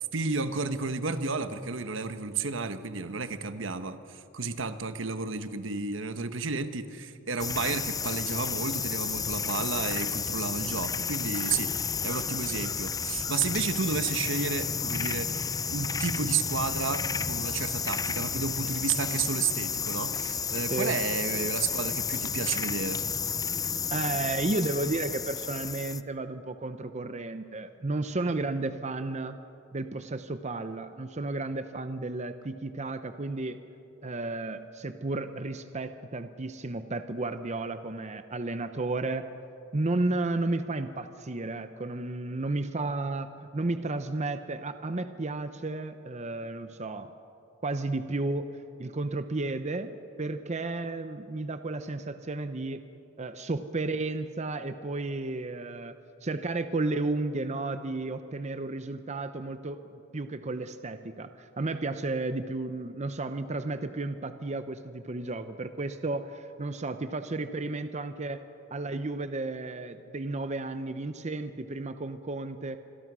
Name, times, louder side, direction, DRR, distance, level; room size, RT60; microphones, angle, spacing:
voice 1, 0.1-23.0, right 4 dB, 75° right, 10 dB, 1.2 m, -32 dB
sound 1, 7.4-26.0, left 6 dB, 20° left, 0.5 m, -32 dB
voice 2, 20.7-21.0 23.9-29.4 29.7-33.6 34.0-39.2 39.7-47.1 47.6-52.8 53.2-55.9 56.2-68.4 68.7-72.8, right 2 dB, 35° right, 10 dB, 0.7 m, -33 dB
26.5 x 22.0 x 6.2 m, 2.7 s
head